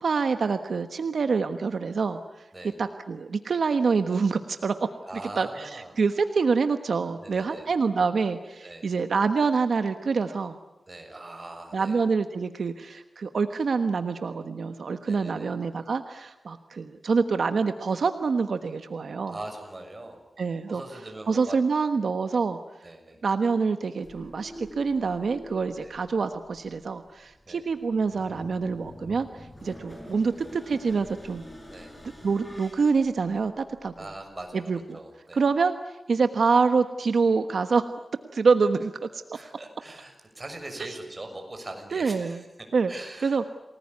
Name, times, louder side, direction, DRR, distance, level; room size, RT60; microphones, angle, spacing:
voice 1, 0.0-2.2 2.8-4.7 5.4-10.6 11.7-19.3 20.4-20.8 21.3-22.6 23.2-31.4 32.2-33.9 34.7-35.0 35.3-37.9 38.3-39.2 40.8-40.9 41.9-42.4 42.7-42.9 43.2-43.4, right 5 dB, 80° right, 8 dB, 1.2 m, -26 dB
voice 2, 5.0-5.9 7.2-7.7 8.6-8.9 10.9-12.0 15.1-15.5 19.3-20.2 20.7-21.6 22.8-23.2 25.7-25.9 27.5-27.6 31.7-31.9 34.0-35.4 39.3-42.5 42.9-43.4, right 2 dB, 30° right, 4 dB, 6.5 m, -41 dB
sound 1, 24.0-34.5, equal, 15° left, 7.9 m, -47 dB
29.5 x 19.5 x 9.6 m, 0.99 s
wide cardioid pair, 100°, 0 cm